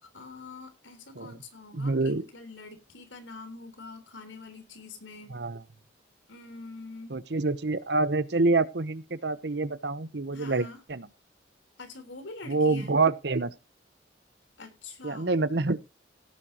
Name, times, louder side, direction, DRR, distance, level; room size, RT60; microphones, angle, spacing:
voice 1, 0.0-5.4 6.3-7.2 10.3-10.8 11.8-13.0 14.6-15.4, left 3 dB, 90° left, 8 dB, 3.8 m, -45 dB
voice 2, 1.7-2.2 5.3-5.6 7.1-11.1 12.5-13.5 15.0-15.8, right 3 dB, 60° right, 16 dB, 0.9 m, -27 dB
17.5 x 8.7 x 2.9 m, 0.27 s
head